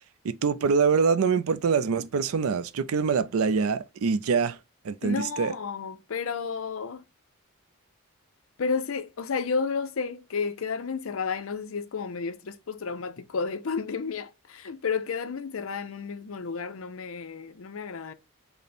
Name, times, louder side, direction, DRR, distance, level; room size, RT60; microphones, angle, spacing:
voice 1, 0.2-4.6 4.8-5.5, right 5 dB, 75° right, 0.4 m, -24 dB
voice 2, 5.0-7.0 8.6-18.1, left 5 dB, 65° left, 0.5 m, -32 dB
5.4 x 2.1 x 4.3 m
head